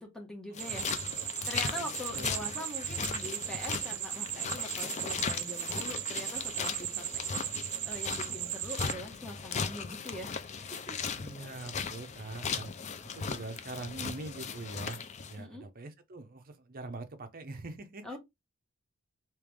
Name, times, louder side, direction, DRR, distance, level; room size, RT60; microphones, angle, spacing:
voice 1, 0.0-0.9 1.1-11.0 15.4-15.6 18.0-18.2, left 1 dB, 5° left, 1.1 m, -43 dB
sound 1, 0.5-15.4, left 6 dB, 30° left, 0.4 m, -38 dB
sound 2, 0.6-8.9, right 16 dB, 90° right, 0.3 m, -37 dB
voice 2, 11.1-12.7 13.1-18.2, right 2 dB, 40° right, 0.6 m, -43 dB
3.4 x 2.9 x 3.3 m
head